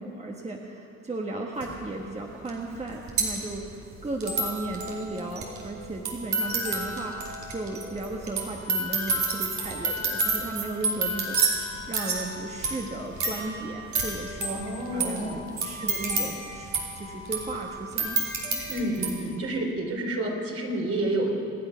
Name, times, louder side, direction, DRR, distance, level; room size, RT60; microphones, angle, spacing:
voice 1, 0.0-15.3 15.6-18.3 18.5-18.6, right 2 dB, 20° right, 0 dB, 1.4 m, -35 dB
sound 1, 1.6-1.7 2.5-2.6 2.7-19.1, right 3 dB, 70° right, 3.2 m, -30 dB
voice 2, 14.4-15.5 18.7-21.3, right 1 dB, 50° right, 0 dB, 3.6 m, -29 dB
26.0 x 9.7 x 5.7 m, 2.6 s
cardioid pair, 90°, 30 cm